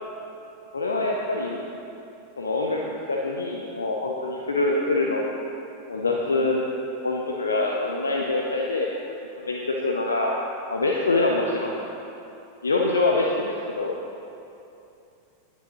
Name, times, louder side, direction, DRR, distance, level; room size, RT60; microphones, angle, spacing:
voice 1, 0.7-1.6 2.4-5.2 5.9-6.6 7.0-9.0 9.5-10.3 10.7-11.7 12.6-14.0, left 2 dB, 75° left, 0 dB, 0.8 m, -25 dB
18.5 x 9.1 x 2.9 m, 2.8 s
figure-of-eight pair, 90°, 0 cm